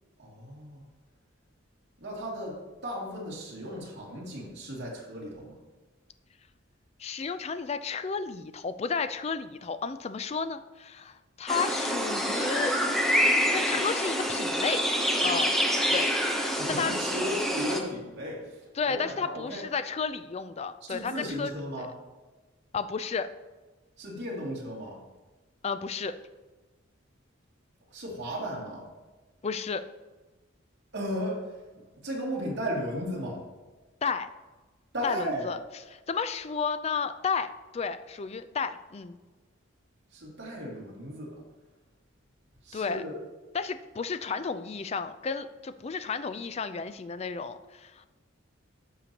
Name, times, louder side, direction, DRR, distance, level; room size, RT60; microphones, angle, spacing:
voice 1, 0.2-0.8 2.0-5.6 16.5-19.6 20.9-21.9 24.0-25.0 27.9-28.8 30.9-33.4 34.9-35.5 40.1-41.4 42.6-43.2, equal, 55° right, -4 dB, 2.7 m, -35 dB
voice 2, 7.0-12.8 13.4-14.8 15.2-15.5 15.9-16.1 16.7-16.9 18.8-21.5 21.8-21.9 22.7-23.3 25.6-26.1 29.4-29.8 34.0-34.3 35.0-35.6 36.1-39.2 42.7-43.0 43.5-48.1, left 5 dB, 30° left, 11 dB, 0.4 m, -32 dB
sound 1, 11.5-17.8, equal, ahead, 0.8 m, -26 dB
12.0 x 6.8 x 2.9 m, 1.2 s
head